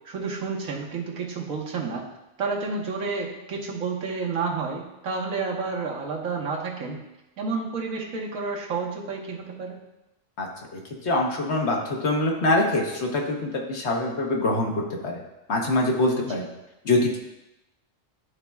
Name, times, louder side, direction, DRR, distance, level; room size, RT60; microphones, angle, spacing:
voice 1, 0.0-2.0 2.4-7.0 7.4-9.8 16.2-16.4, right 4 dB, 85° right, -1 dB, 1.5 m, -30 dB
voice 2, 10.7-14.7 15.0-15.2 15.5-16.5 16.8-17.2, left 2 dB, 60° left, 0 dB, 1.3 m, -24 dB
11.5 x 4.1 x 2.3 m, 0.95 s
omnidirectional pair, 1.4 m